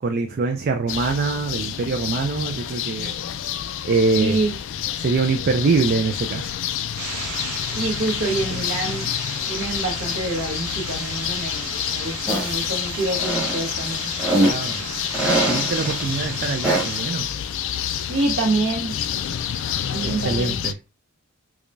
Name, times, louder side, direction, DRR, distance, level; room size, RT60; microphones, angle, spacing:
voice 1, 0.0-3.2 3.8-4.4 5.0-6.5 8.5-8.6 14.3-14.8 15.1-17.3 20.0-20.7, right 4 dB, 45° right, 0.3 m, -24 dB
sound 1, 0.9-20.7, left 10 dB, 55° left, 0.3 m, -28 dB
voice 2, 4.1-4.5 7.7-9.1 9.5-14.1 18.1-19.0 19.8-20.6, right 2 dB, 60° right, 1.2 m, -26 dB
sound 2, 7.0-17.0, right 5 dB, 90° right, 0.8 m, -36 dB
sound 3, 12.3-12.7 13.1-14.7 15.1-16.0 16.6-17.1, right 1 dB, 5° right, 1.0 m, -23 dB
4.7 x 2.2 x 2.6 m
head